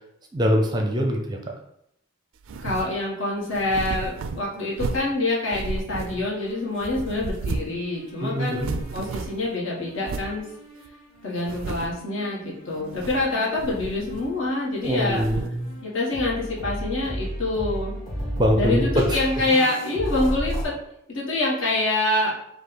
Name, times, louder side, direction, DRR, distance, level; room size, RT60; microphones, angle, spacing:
voice 1, 0.3-1.5 8.2-8.8 14.8-15.7 18.4-19.2, equal, 20° right, 2 dB, 0.5 m, -23 dB
sound 1, 2.4-3.0 3.5-5.2 5.5-6.5 6.8-8.1 8.4-9.5 10.0-10.4 10.9-11.0 11.4-12.0 12.8-13.3 13.6-14.5 14.8-15.6, right 3 dB, 75° right, 0.3 m, -33 dB
voice 2, 2.6-10.4 11.2-12.4 12.6-15.2 15.8-17.9 18.5-20.7 21.1-22.3, left 2 dB, 65° left, -5 dB, 1.4 m, -26 dB
sound 2, 6.2-7.8 8.1-9.5 10.2-20.6, equal, 45° left, 1.6 m, -35 dB
5.1 x 2.4 x 4.0 m, 0.76 s
head